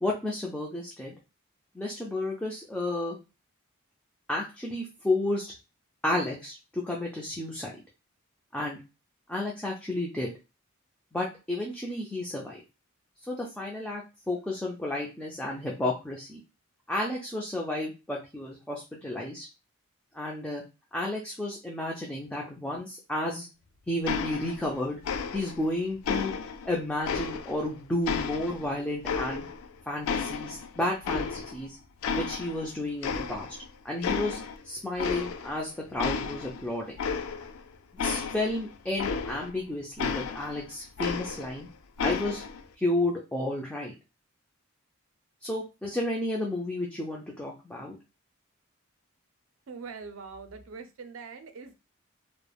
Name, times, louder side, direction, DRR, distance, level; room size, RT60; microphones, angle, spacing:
voice 1, 0.0-1.1 1.7-3.2 4.3-5.5 6.0-7.7 8.5-8.8 9.3-10.3 11.1-12.6 13.3-16.4 16.9-19.5 20.1-20.6 20.9-23.5 23.9-25.0 25.3-26.3 26.6-29.5 29.9-31.8 32.1-33.6 33.8-34.4 34.6-36.9 37.9-41.7 42.0-42.4 42.8-43.9 45.4-48.0, left 1 dB, 5° left, -2 dB, 0.4 m, -32 dB
sound 1, 24.0-24.8 25.0-25.7 26.0-27.7 28.0-29.7 30.0-31.7 32.0-32.7 33.0-33.7 34.0-34.6 35.0-35.6 36.0-39.6 40.0-41.6 42.0-42.6, left 5 dB, 80° left, 0.3 m, -33 dB
voice 2, 49.7-51.7, right 5 dB, 75° right, 8 dB, 0.4 m, -43 dB
3.2 x 2.1 x 2.3 m, 0.29 s
head